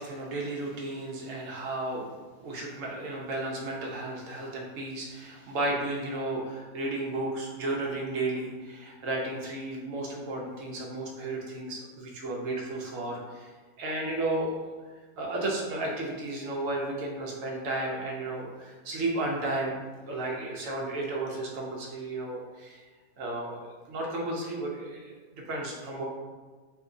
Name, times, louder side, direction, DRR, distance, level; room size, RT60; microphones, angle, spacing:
voice 1, 0.0-13.5 13.8-14.6 15.2-19.8 20.1-22.8 23.2-26.0, right 2 dB, 70° right, -1 dB, 0.8 m, -33 dB
2.6 x 2.6 x 3.6 m, 1.4 s
omnidirectional pair, 1.8 m